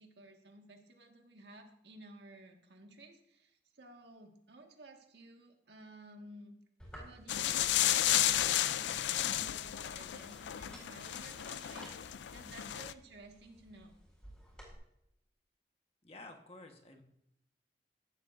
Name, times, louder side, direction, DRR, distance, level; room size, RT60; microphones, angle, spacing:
voice 1, 0.0-6.5 6.9-13.9, right 2 dB, 75° right, 3 dB, 1.6 m, -55 dB
sound 1, 6.8-14.7, equal, 5° left, 4.6 m, -56 dB
sound 2, 7.3-12.9, left 12 dB, 80° left, 0.4 m, -33 dB
voice 2, 16.0-17.0, left 2 dB, 35° left, 4 dB, 1.2 m, -51 dB
15.0 x 11.5 x 2.6 m, 0.79 s
head